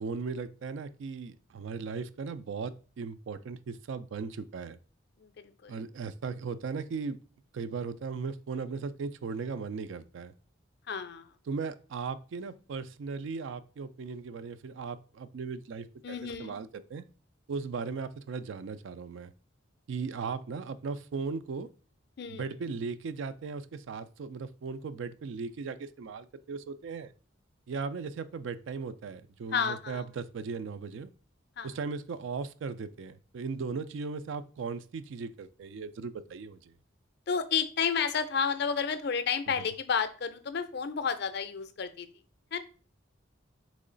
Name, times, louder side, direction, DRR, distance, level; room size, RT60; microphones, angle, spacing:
voice 1, 0.0-4.8 5.7-7.2 7.5-10.3 11.5-17.0 17.5-19.3 19.9-21.7 22.3-27.1 27.7-31.1 31.6-36.7 39.5-39.7, right 5 dB, 65° right, 13 dB, 0.3 m, -37 dB
voice 2, 5.2-5.7 10.9-11.3 16.0-16.6 22.2-22.5 29.5-30.0 31.6-31.7 37.3-42.1 42.5-42.6, left 6 dB, 55° left, 11 dB, 0.4 m, -31 dB
3.8 x 3.1 x 3.8 m, 0.38 s
head